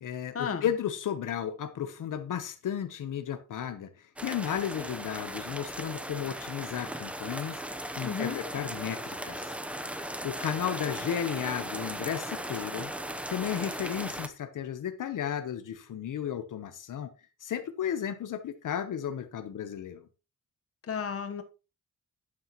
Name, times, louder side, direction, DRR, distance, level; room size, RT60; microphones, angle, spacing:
voice 1, 0.0-9.6 9.9-12.9 13.3-17.1 17.4-20.1, left 9 dB, 75° left, 0.9 m, -34 dB
sound 1, 4.2-14.3, right 1 dB, 5° right, 0.8 m, -37 dB
voice 2, 8.0-8.4 20.9-21.4, left 6 dB, 45° left, 1.1 m, -33 dB
11.5 x 8.7 x 3.0 m
wide cardioid pair, 155°, 31 cm